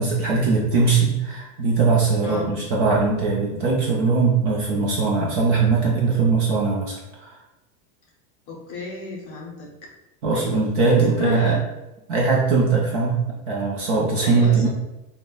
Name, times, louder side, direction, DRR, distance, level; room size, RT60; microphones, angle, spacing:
voice 1, 0.0-7.3 10.2-11.6 12.1-14.7, right 4 dB, 35° right, -3 dB, 0.4 m, -20 dB
voice 2, 2.2-2.5 8.5-9.9 10.3-11.6 14.2-14.7, left 4 dB, 30° left, -3 dB, 0.6 m, -34 dB
5.1 x 2.1 x 2.2 m, 1.0 s
supercardioid pair, 160°, 47 cm